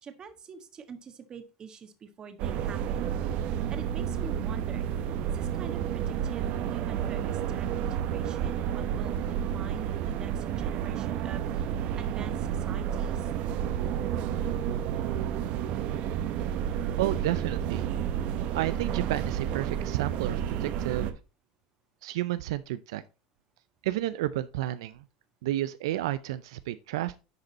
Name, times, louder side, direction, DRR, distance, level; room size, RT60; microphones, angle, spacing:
voice 1, 0.0-3.0 3.5-4.9 5.2-13.3, right 6 dB, 30° right, 1.6 m, -45 dB
sound 1, 2.4-21.1, right 9 dB, 55° right, 1.1 m, -31 dB
voice 2, 17.0-17.9 18.5-21.2 22.0-23.0 23.8-25.0 25.4-27.2, right 14 dB, 85° right, 0.5 m, -31 dB
10.5 x 5.2 x 4.1 m
supercardioid pair, 115°, 3 cm